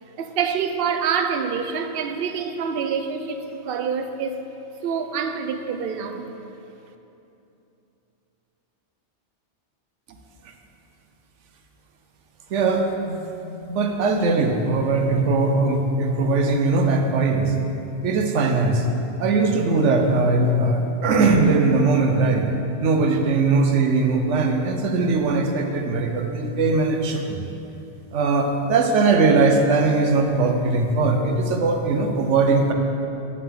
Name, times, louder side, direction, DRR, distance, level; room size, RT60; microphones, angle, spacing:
voice 1, 0.2-4.4 4.8-6.3, right 6 dB, 60° right, 8 dB, 0.7 m, -26 dB
voice 2, 12.5-13.2 13.6-17.5 18.0-18.9 19.2-22.5 22.8-27.4 28.1-32.7, right 3 dB, 80° right, 4 dB, 1.1 m, -20 dB
9.1 x 8.5 x 3.8 m, 2.9 s
omnidirectional pair, 1.2 m